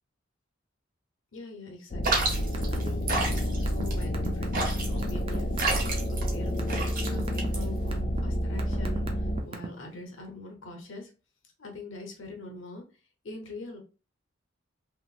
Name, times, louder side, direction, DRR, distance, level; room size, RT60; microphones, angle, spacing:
voice 1, 1.3-11.1 11.6-12.8 13.2-13.8, left 2 dB, 80° left, 2 dB, 0.8 m, -43 dB
sound 1, 1.9-9.4, equal, 40° left, 0.4 m, -29 dB
sound 2, 2.0-8.0, right 3 dB, 45° right, 0.9 m, -31 dB
sound 3, 2.4-2.9 3.2-5.8 6.3-6.8 7.1-7.5 7.9-8.2 8.6-9.9, right 2 dB, 30° right, 0.5 m, -36 dB
3.0 x 2.9 x 2.4 m, 0.34 s
head